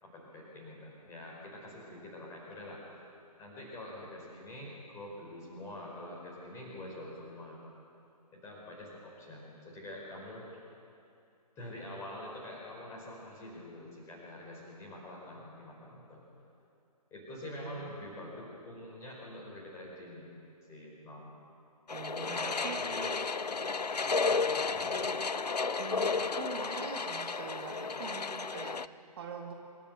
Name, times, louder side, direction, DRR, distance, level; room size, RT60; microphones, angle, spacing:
voice 1, 0.0-2.8 3.4-7.6 8.3-10.5 11.6-16.2 17.1-20.3 20.7-21.3 22.2-23.1 23.9-25.2, left 1 dB, 15° left, -3 dB, 4.9 m, -46 dB
voice 2, 17.6-18.0 21.9-22.8 25.8-29.5, right 6 dB, 35° right, 1 dB, 2.0 m, -44 dB
sound 1, 21.9-28.9, left 4 dB, 80° left, 0.6 m, -33 dB
26.0 x 13.5 x 8.1 m, 2.6 s
figure-of-eight pair, 135°, 21 cm